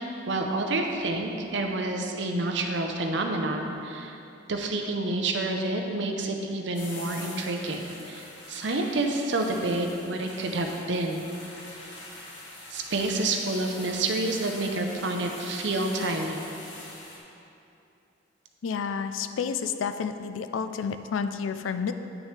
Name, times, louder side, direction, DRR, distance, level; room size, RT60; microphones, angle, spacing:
voice 1, 0.3-4.2 4.5-11.3 12.7-16.5, right 2 dB, 65° right, 3 dB, 0.7 m, -28 dB
sound 1, 6.7-17.2, left 2 dB, 70° left, 1.4 m, -44 dB
voice 2, 18.6-21.9, left 6 dB, 90° left, 10 dB, 0.4 m, -30 dB
9.1 x 6.2 x 3.2 m, 2.7 s
head